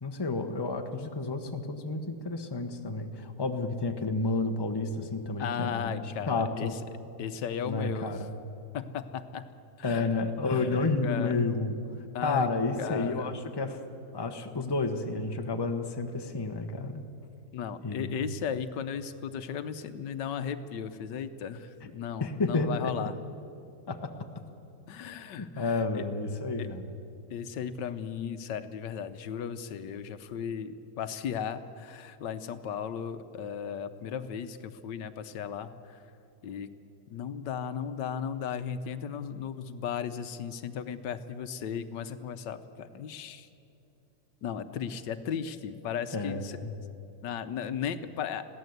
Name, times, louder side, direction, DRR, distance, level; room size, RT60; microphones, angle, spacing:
voice 1, 0.0-6.0 6.3-6.7 7.7-8.3 9.8-11.8 12.2-13.8 14.1-17.0 17.8-18.1 22.2-22.9 23.9-24.1 25.4-26.9 46.1-46.7, left 3 dB, 15° left, 5 dB, 1.0 m, -31 dB
voice 2, 5.4-6.7 7.2-8.1 8.7-9.5 9.8-10.1 10.5-11.3 12.1-12.5 12.8-13.3 17.5-23.1 24.9-26.0 26.6-26.7 27.3-36.0 36.4-36.7 37.1-43.5 44.4-46.6 47.2-48.4, left 8 dB, 80° left, 11 dB, 1.4 m, -36 dB
21.5 x 15.5 x 8.0 m, 2.8 s
omnidirectional pair, 1.9 m